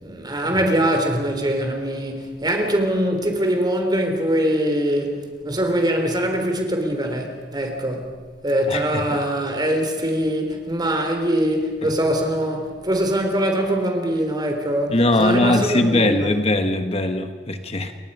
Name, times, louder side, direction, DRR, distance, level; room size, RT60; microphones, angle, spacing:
voice 1, 0.0-8.1 8.4-16.3, right 1 dB, 25° right, 3.4 m, -23 dB
voice 2, 8.7-9.2 11.8-11.9 14.9-17.9, left 1 dB, 35° left, 1.2 m, -21 dB
29.5 x 22.5 x 5.5 m
head